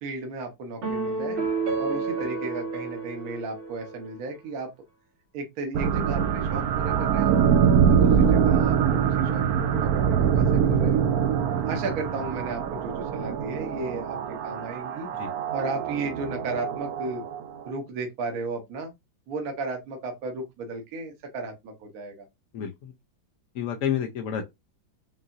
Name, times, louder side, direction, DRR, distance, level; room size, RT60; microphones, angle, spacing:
voice 1, 0.0-1.4 1.8-4.7 5.3-7.5 7.9-11.0 11.7-14.2 14.4-15.1 15.5-17.2 17.6-18.9 19.3-22.3, right 3 dB, 55° right, 1.4 m, -34 dB
sound 1, 0.8-4.3, right 4 dB, 90° right, 2.5 m, -30 dB
sound 2, 5.7-17.7, right 7 dB, 70° right, 0.9 m, -24 dB
voice 2, 22.5-22.9 23.6-24.4, left 8 dB, 70° left, 0.7 m, -29 dB
5.6 x 2.7 x 2.5 m
omnidirectional pair, 2.1 m